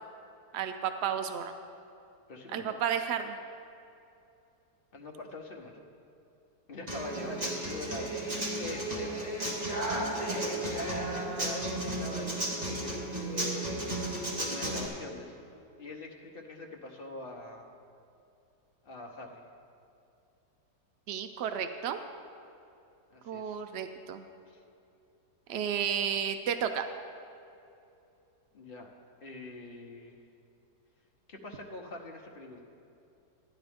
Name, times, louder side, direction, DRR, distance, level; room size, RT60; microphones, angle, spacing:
voice 1, 0.5-1.5 2.5-3.4 21.1-22.0 23.2-24.2 25.5-26.9, right 8 dB, 85° right, 8 dB, 0.5 m, -32 dB
voice 2, 2.3-2.8 4.9-5.8 6.7-14.1 14.4-15.3 15.8-17.7 18.8-19.4 23.1-23.6 24.5-24.6 28.5-28.9 29.2-30.2 31.3-32.6, left 2 dB, 40° left, 1 dB, 1.0 m, -44 dB
Human voice / Acoustic guitar, 6.9-14.9, right 1 dB, 25° right, 1.6 m, -33 dB
13.5 x 10.0 x 3.5 m, 2.7 s
omnidirectional pair, 1.7 m